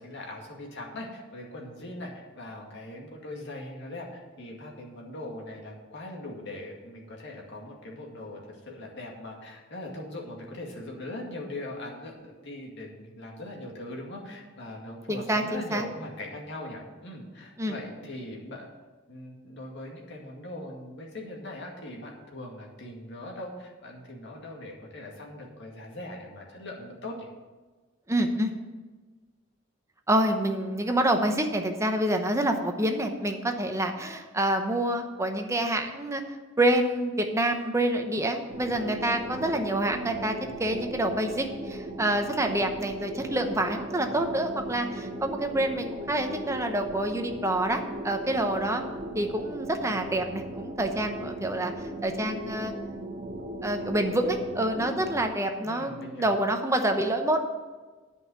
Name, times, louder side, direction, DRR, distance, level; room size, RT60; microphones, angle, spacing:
voice 1, 0.0-18.7 19.1-27.3 55.6-56.3, left 1 dB, 60° left, -1 dB, 2.2 m, -40 dB
voice 2, 15.1-15.8 17.6-17.8 28.1-28.5 30.1-36.2 36.6-48.8 49.1-51.7 52.0-52.7 53.6-57.5, right 1 dB, 15° right, 5 dB, 0.8 m, -27 dB
sound 1, 38.5-55.2, right 1 dB, 40° right, 1.3 m, -38 dB
9.9 x 5.5 x 8.0 m, 1.3 s
head